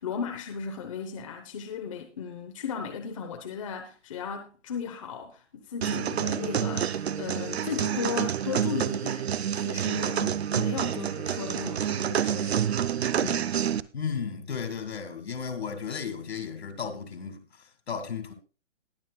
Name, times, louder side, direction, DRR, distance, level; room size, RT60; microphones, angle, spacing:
voice 1, 0.0-12.8 13.2-13.5, left 6 dB, 25° left, 0.9 m, -36 dB
sound 1, 5.8-13.8, right 9 dB, 60° right, 0.7 m, -28 dB
voice 2, 13.9-17.4 17.9-18.3, left 6 dB, 55° left, 2.3 m, -34 dB
20.5 x 7.6 x 2.3 m
hypercardioid pair, 170°, 37 cm